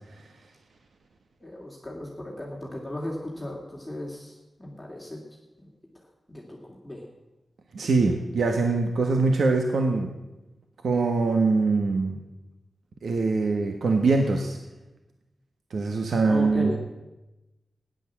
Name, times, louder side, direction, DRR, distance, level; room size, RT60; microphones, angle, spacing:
voice 1, 1.4-5.2 5.6-5.7 5.9-6.0 6.3-7.0 16.3-16.8, left 1 dB, 5° left, -3 dB, 2.5 m, -36 dB
voice 2, 7.7-10.1 10.8-12.2 13.0-14.6 15.7-16.8, right 3 dB, 85° right, 4 dB, 1.5 m, -23 dB
17.5 x 11.0 x 7.4 m, 1.0 s
wide cardioid pair, 160°, 0 cm